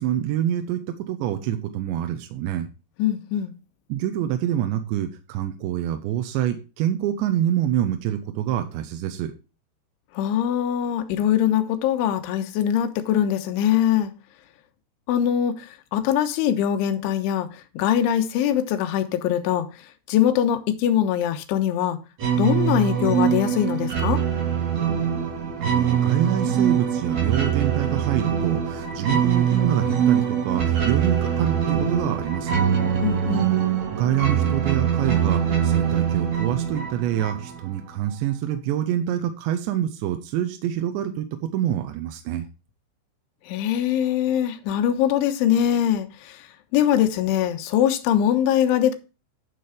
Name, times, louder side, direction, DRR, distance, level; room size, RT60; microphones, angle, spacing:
voice 1, 0.0-2.7 3.9-9.3 25.6-32.6 33.9-41.3 41.5-42.5, right 11 dB, 75° right, 3.0 m, -26 dB
voice 2, 3.0-3.5 10.1-14.1 15.1-22.0 22.3-24.2 33.0-33.5 43.5-48.9, left 10 dB, 75° left, 3.5 m, -22 dB
sound 1, 22.2-37.7, right 8 dB, 50° right, 2.4 m, -23 dB
11.0 x 6.2 x 5.0 m
omnidirectional pair, 5.8 m